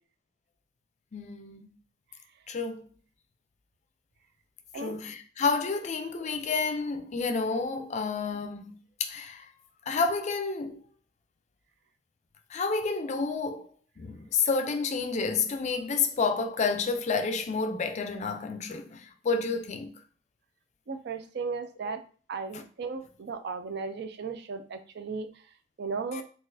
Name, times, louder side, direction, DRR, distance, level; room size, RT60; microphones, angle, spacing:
voice 1, 1.1-1.7 2.5-2.9 4.7-9.5 9.9-10.8 12.5-13.7 14.0-19.9 22.5-22.6 26.1-26.2, left 4 dB, 35° left, 0.4 m, -30 dB
voice 2, 20.9-22.0 22.3-25.3 25.8-26.2, right 4 dB, 60° right, 0.4 m, -35 dB
3.9 x 2.4 x 2.6 m
head